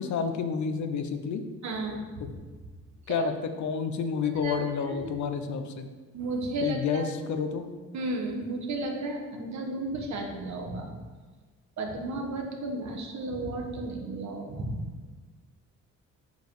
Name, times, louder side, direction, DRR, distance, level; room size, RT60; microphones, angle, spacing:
voice 1, 0.0-1.4 3.1-5.9 6.6-7.7, left 6 dB, 70° left, 7 dB, 0.9 m, -30 dB
voice 2, 1.6-2.3 3.1-3.2 4.4-4.6 4.9-5.1 6.1-7.0 7.9-10.9 11.8-14.8, right 2 dB, 65° right, 2 dB, 1.6 m, -33 dB
8.0 x 5.3 x 4.9 m, 1.4 s
cardioid pair, 90°, 30 cm